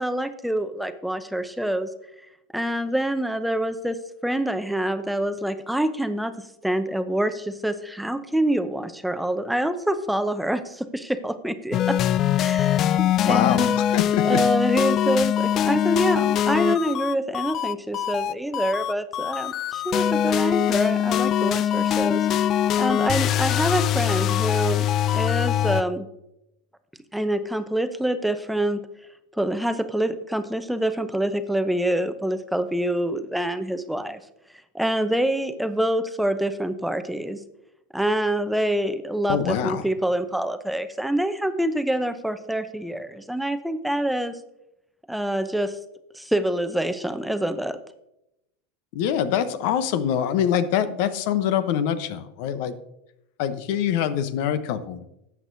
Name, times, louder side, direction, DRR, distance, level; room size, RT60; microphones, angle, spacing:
voice 1, 0.0-1.9 2.5-4.0 4.2-6.3 6.6-12.0 12.4-13.7 14.2-22.3 22.8-26.1 27.1-28.9 29.3-34.2 34.7-37.4 37.9-44.4 45.1-45.8 46.1-47.8, right 1 dB, 5° right, 10 dB, 0.7 m, -26 dB
sound 1, 11.7-25.8, left 10 dB, 45° left, 0.4 m, -23 dB
voice 2, 13.3-14.4 39.3-39.8 48.9-52.7 53.4-55.0, left 9 dB, 65° left, 12 dB, 0.8 m, -24 dB
13.5 x 8.2 x 2.7 m, 0.85 s
hypercardioid pair, 95°, 0 cm